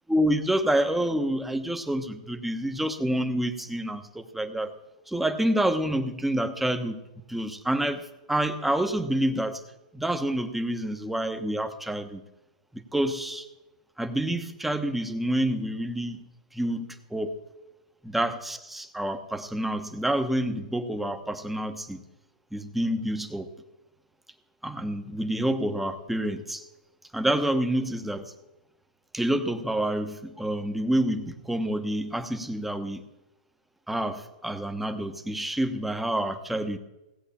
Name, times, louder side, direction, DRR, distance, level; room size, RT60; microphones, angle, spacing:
voice 1, 0.1-4.7 5.1-7.0 7.3-9.6 9.9-12.2 12.7-13.5 14.0-16.2 16.5-17.4 18.0-22.0 22.5-23.5 24.6-26.6 27.1-28.3 29.1-33.0 33.9-36.8, right 1 dB, 5° right, 8 dB, 1.1 m, -28 dB
17.0 x 8.0 x 7.2 m, 0.97 s
hypercardioid pair, 125°, 4 cm